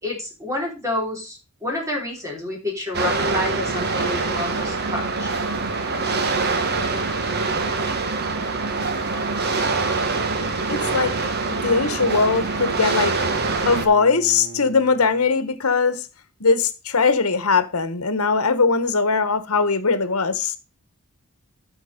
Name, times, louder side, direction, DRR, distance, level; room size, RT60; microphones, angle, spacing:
voice 1, 0.0-5.3, left 2 dB, 15° right, 3.4 m, -29 dB
sound 1, 2.9-13.9, right 3 dB, 50° right, 1.3 m, -24 dB
voice 2, 10.7-11.2 11.5-13.2 13.7-16.1 16.4-20.5, left 4 dB, 75° left, 1.2 m, -20 dB
Bowed string instrument, 11.3-15.4, right 4 dB, 65° right, 2.3 m, -41 dB
12.5 x 4.5 x 5.2 m
head